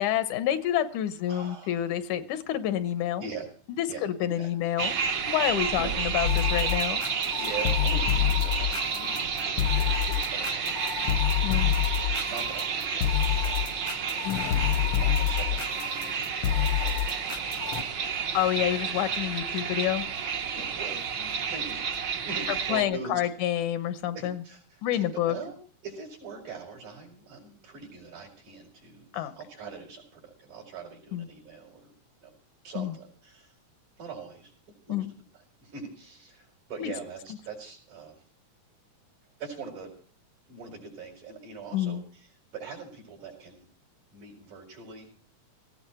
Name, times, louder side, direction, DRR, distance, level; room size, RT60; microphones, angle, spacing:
voice 1, 0.0-3.3 3.8-4.9 5.3-7.0 11.4-11.7 14.2-14.5 18.3-20.1 22.7-24.4 24.8-25.4 29.1-29.3 31.1-31.3 32.8-32.9 34.9-35.1 36.8-36.9 41.7-42.0, left 11 dB, 90° left, 12 dB, 2.5 m, -28 dB
voice 2, 1.3-1.9 3.2-3.5 3.9-4.5 5.8-5.9 7.2-11.5 12.3-16.0 16.4-18.4 20.5-23.2 24.1-25.6 25.8-31.9 32.2-32.3 32.6-33.6 34.0-34.5 34.9-35.1 35.3-38.2 39.4-39.9 40.5-43.7 44.1-45.1, right 4 dB, 85° right, -3 dB, 5.9 m, -43 dB
sound 1, 4.8-22.8, right 6 dB, 60° right, 1.2 m, -31 dB
sound 2, 6.2-17.8, left 10 dB, 70° left, 1.4 m, -27 dB
17.5 x 16.0 x 4.4 m, 0.43 s
omnidirectional pair, 3.5 m